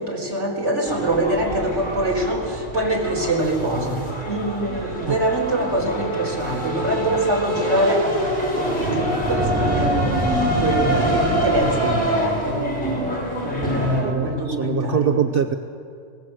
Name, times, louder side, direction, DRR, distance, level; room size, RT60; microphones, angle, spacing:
voice 1, 0.0-4.0 4.3-12.6 13.4-15.1, right 1 dB, 70° right, -1 dB, 4.4 m, -24 dB
sound 1, 0.8-14.0, right 1 dB, 80° left, 6.2 m, -26 dB
Boom, 9.2-12.3, equal, 15° right, 4.4 m, -26 dB
voice 2, 14.0-15.6, right 8 dB, 55° right, 8 dB, 0.9 m, -23 dB
24.0 x 20.5 x 7.7 m, 2.4 s
omnidirectional pair, 1.3 m